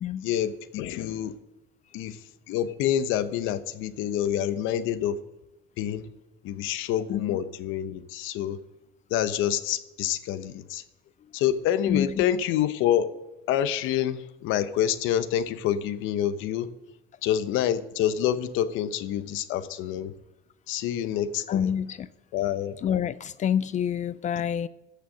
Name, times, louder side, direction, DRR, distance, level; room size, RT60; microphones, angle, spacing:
voice 1, 0.2-1.3 1.9-2.2 2.5-5.2 5.8-6.0 6.4-8.6 9.1-10.8 11.3-13.1 13.5-16.7 17.2-20.1 20.7-21.7 22.3-22.8, left 10 dB, 70° left, 0.9 m, -27 dB
voice 2, 21.5-22.1 22.8-24.7, left 9 dB, 35° left, 0.4 m, -27 dB
14.5 x 6.7 x 6.3 m
cardioid pair, 120°, 21 cm